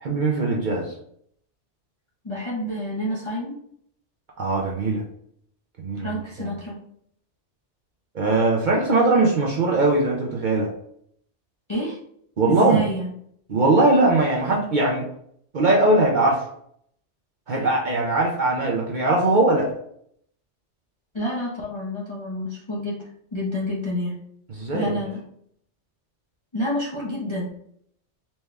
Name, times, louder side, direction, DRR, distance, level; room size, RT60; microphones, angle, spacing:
voice 1, 0.0-0.9 4.4-5.0 5.8-6.6 8.1-10.7 12.4-12.9 13.5-15.1 15.5-16.5 17.5-19.7 24.5-25.0, right 2 dB, 55° right, -2 dB, 0.6 m, -20 dB
voice 2, 2.2-3.6 6.0-6.8 11.7-12.0 12.5-13.1 21.1-23.0 23.3-24.1 24.7-25.2 26.5-27.5, equal, 30° left, -6 dB, 0.6 m, -28 dB
4.2 x 2.2 x 3.2 m, 0.68 s
omnidirectional pair, 1.2 m